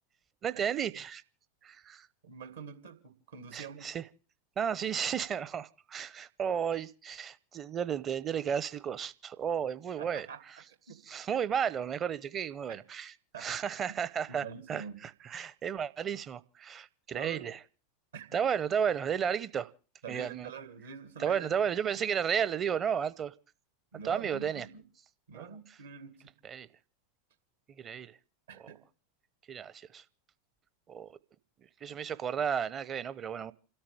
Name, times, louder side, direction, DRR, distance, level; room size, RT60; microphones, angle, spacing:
voice 1, 0.4-1.2 1.6-2.1 3.5-4.0 4.6-10.3 11.1-13.1 13.4-17.6 18.3-19.7 20.1-20.5 21.2-23.3 24.0-24.7 25.3-25.5 26.4-26.7 27.8-28.2 29.5-30.0 30.9-31.2 31.8-33.5, right 8 dB, 30° right, 0.8 m, -33 dB
voice 2, 2.2-3.9 10.0-11.0 12.7-12.8 13.3-13.5 14.3-15.0 17.1-17.5 18.1-18.4 20.0-21.7 23.9-24.8 25.3-26.3 28.5-28.8 31.9-32.0, right 7 dB, 65° right, 2.3 m, -45 dB
29.0 x 13.0 x 3.4 m
figure-of-eight pair, 85°, 0 cm